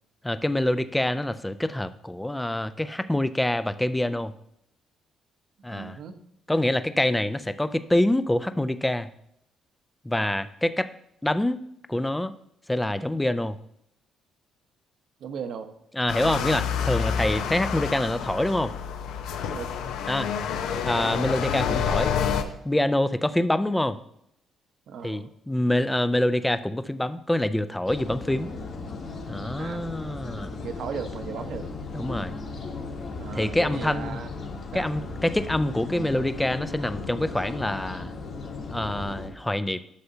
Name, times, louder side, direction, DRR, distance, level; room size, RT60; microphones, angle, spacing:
voice 1, 0.2-4.3 5.6-6.0 6.5-9.1 10.0-10.9 11.2-11.6 11.9-12.3 12.7-13.6 15.9-18.7 20.1-20.3 20.8-22.1 22.7-24.0 25.0-28.5 29.3-30.5 31.9-32.3 33.3-34.2 34.7-38.1 38.7-39.8, left 1 dB, 5° left, 12 dB, 0.3 m, -26 dB
voice 2, 5.7-6.2 15.2-15.7 19.5-19.7 24.9-25.3 29.6-29.8 30.6-31.7 33.2-34.3 34.7-34.9, right 7 dB, 65° right, 8 dB, 0.8 m, -36 dB
sound 1, 16.1-22.4, left 7 dB, 90° left, 0.6 m, -28 dB
sound 2, 27.9-39.3, left 3 dB, 55° left, 1.5 m, -36 dB
11.5 x 6.8 x 2.7 m, 0.74 s
cardioid pair, 130°, 0 cm